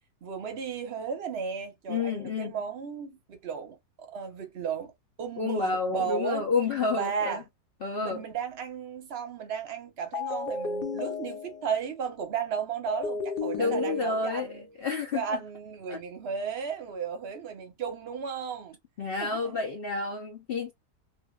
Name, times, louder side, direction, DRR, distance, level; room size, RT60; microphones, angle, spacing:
voice 1, 0.2-4.9 5.2-6.4 7.0-7.4 8.0-14.7 15.1-18.8 19.2-19.6, right 6 dB, 50° right, 0.8 m, -34 dB
voice 2, 1.9-2.5 5.4-7.4 7.8-8.2 13.6-15.4 15.9-16.0 19.0-20.7, left 4 dB, 65° left, 0.5 m, -30 dB
sound 1, 10.1-11.8 12.9-14.6, left 3 dB, 85° left, 1.2 m, -33 dB
2.7 x 2.3 x 2.2 m
omnidirectional pair, 1.8 m